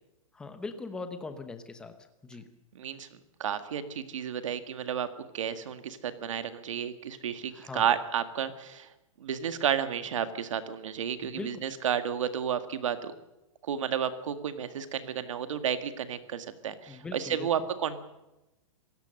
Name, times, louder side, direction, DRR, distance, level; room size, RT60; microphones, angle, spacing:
voice 1, 0.3-1.9 2.2-2.5 7.5-7.9 11.2-11.5 16.9-17.5, left 3 dB, 5° left, 8 dB, 1.0 m, -40 dB
voice 2, 2.7-3.1 3.4-5.1 5.3-8.9 9.2-13.1 13.6-18.0, right 8 dB, 65° right, 10 dB, 1.9 m, -32 dB
26.5 x 16.5 x 6.5 m, 0.96 s
hypercardioid pair, 180°, 18 cm